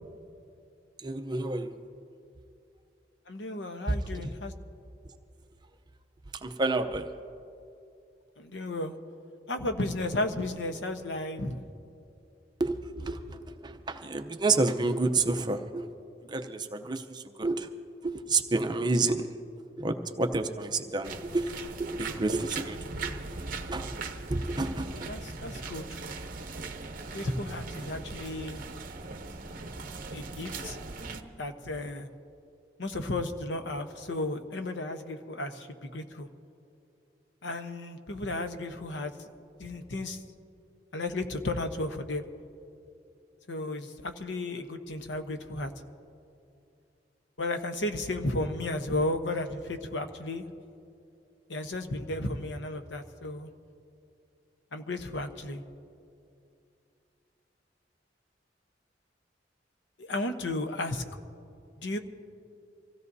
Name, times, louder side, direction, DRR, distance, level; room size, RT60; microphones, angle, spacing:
voice 1, 1.0-1.8 3.9-4.0 6.4-7.1 12.6-13.4 13.6-15.9 16.3-17.7 18.0-19.3 19.8-21.5 21.8-23.1 23.7-23.8 24.3-25.1, right 3 dB, 25° right, 6 dB, 0.7 m, -29 dB
voice 2, 3.3-4.5 8.4-8.9 9.5-11.6 24.9-25.8 27.1-28.6 30.1-30.8 31.4-32.1 32.8-36.3 37.4-39.1 39.6-40.2 40.9-42.2 43.5-45.7 47.4-50.5 51.5-53.5 54.7-55.6 60.0-61.0 61.8-62.0, left 2 dB, 85° left, 7 dB, 1.0 m, -33 dB
sound 1, 21.0-31.2, right 3 dB, 50° right, 0.8 m, -39 dB
25.5 x 16.0 x 2.7 m, 2.6 s
head